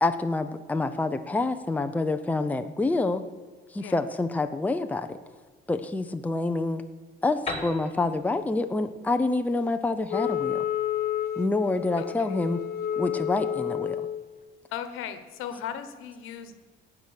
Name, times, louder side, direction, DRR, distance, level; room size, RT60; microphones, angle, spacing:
voice 1, 0.0-3.2 3.7-5.2 5.7-6.8 7.2-10.7 11.4-12.6 13.0-14.1, left 2 dB, 5° left, 7 dB, 0.6 m, -27 dB
Piano, 7.5-11.1, left 3 dB, 30° left, 2.1 m, -40 dB
Wind instrument woodwind instrument, 10.1-14.2, left 10 dB, 50° left, 0.8 m, -30 dB
voice 2, 12.0-12.4 14.7-16.5, left 9 dB, 80° left, 10 dB, 1.2 m, -37 dB
17.0 x 6.1 x 6.6 m, 1.5 s
cardioid pair, 120°, 21 cm